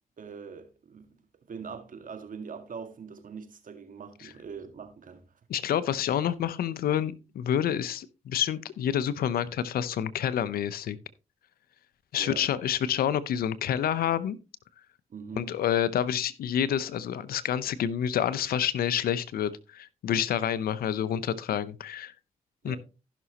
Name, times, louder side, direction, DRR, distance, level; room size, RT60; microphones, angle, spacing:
voice 1, 0.2-1.2 1.5-5.2 12.2-12.5 15.1-15.5 22.6-22.8, right 6 dB, 65° right, 2.0 m, -42 dB
voice 2, 5.5-11.0 12.1-14.4 15.4-22.1 22.6-22.8, left 9 dB, 85° left, 0.8 m, -28 dB
15.5 x 6.1 x 2.9 m
supercardioid pair, 55°, 15 cm